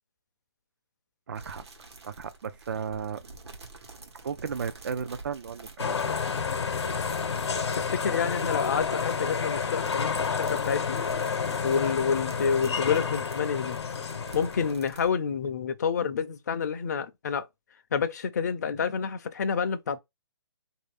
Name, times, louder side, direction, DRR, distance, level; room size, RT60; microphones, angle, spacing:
voice 1, 1.3-1.6 2.0-3.2 4.2-6.2, right 6 dB, 50° right, 0.4 m, -34 dB
sound 1, 1.3-15.1, right 3 dB, 75° right, 1.2 m, -48 dB
sound 2, 5.8-14.7, left 6 dB, 80° left, 0.8 m, -30 dB
voice 2, 7.8-11.0 11.6-13.8 14.3-17.5 17.9-20.0, left 6 dB, 40° left, 0.5 m, -28 dB
3.0 x 2.7 x 3.3 m
hypercardioid pair, 170°, 14 cm